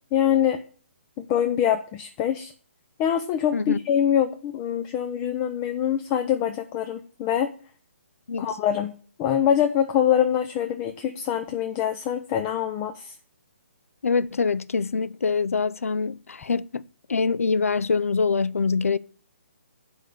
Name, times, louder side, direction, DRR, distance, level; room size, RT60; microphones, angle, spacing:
voice 1, 0.1-0.6 1.2-2.5 3.0-7.5 8.4-8.9 9.2-13.1, left 9 dB, 20° left, 0.6 m, -24 dB
voice 2, 14.0-16.8 17.1-19.0, left 4 dB, 85° left, 0.4 m, -24 dB
8.1 x 5.0 x 7.0 m
hypercardioid pair, 150°, 7 cm